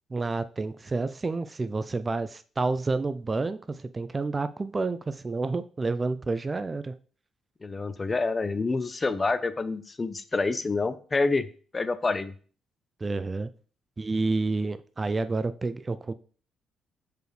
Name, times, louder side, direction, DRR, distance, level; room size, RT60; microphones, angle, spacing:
voice 1, 0.1-7.0 13.0-13.5 14.0-16.1, right 3 dB, 25° right, 13 dB, 0.4 m, -29 dB
voice 2, 7.6-11.5 11.7-12.3, left 3 dB, 25° left, 13 dB, 0.6 m, -27 dB
6.9 x 5.0 x 3.1 m, 0.41 s
cardioid pair, 90°, 0 cm